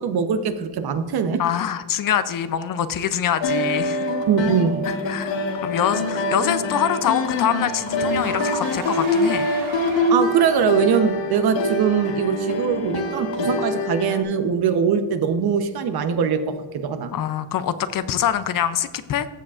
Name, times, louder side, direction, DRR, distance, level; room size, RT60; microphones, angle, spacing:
voice 1, 0.0-1.4 4.3-4.9 10.1-17.1, right 6 dB, 55° right, 9 dB, 0.9 m, -22 dB
voice 2, 1.4-4.1 4.9-5.4 5.6-9.5 17.1-19.3, left 9 dB, 50° left, 13 dB, 0.5 m, -24 dB
sound 1, 3.4-14.2, left 1 dB, 75° left, 1.4 m, -24 dB
Car / Engine, 5.6-10.5, right 5 dB, 85° right, 2.4 m, -38 dB
14.5 x 7.4 x 2.4 m, 1.4 s
cardioid pair, 115°, 45 cm